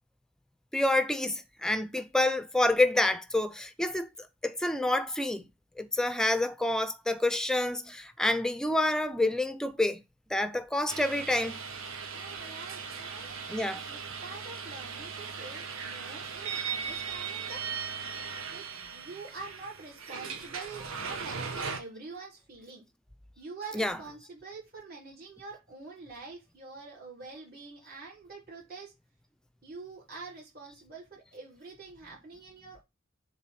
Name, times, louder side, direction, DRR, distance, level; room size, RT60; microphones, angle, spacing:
voice 1, 0.7-4.1 4.4-5.4 5.8-10.0 10.3-11.5 13.5-13.8 23.7-24.0, left 1 dB, 5° left, 0.5 m, -28 dB
sound 1, 10.9-21.8, right 6 dB, 80° right, 1.3 m, -38 dB
voice 2, 12.1-13.3 13.6-17.6 18.1-18.2 18.5-22.8 23.4-28.9 29.6-32.8, right 4 dB, 50° right, 3.4 m, -46 dB
7.4 x 3.5 x 5.8 m
head